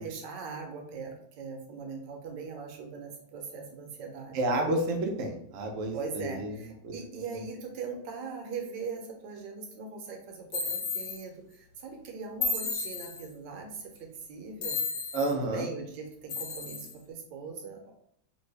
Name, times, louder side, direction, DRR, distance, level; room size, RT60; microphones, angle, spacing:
voice 1, 0.0-4.4 5.9-14.8 15.3-17.9, right 5 dB, 70° right, 2 dB, 1.2 m, -40 dB
voice 2, 4.3-6.9 7.3-7.5 15.1-15.7, right 2 dB, 85° right, 2 dB, 0.6 m, -30 dB
sound 1, 10.5-11.2 12.4-13.3 14.6-15.3 16.3-16.9, left 4 dB, 65° left, 1.1 m, -33 dB
3.0 x 2.6 x 3.2 m, 0.73 s
omnidirectional pair, 2.2 m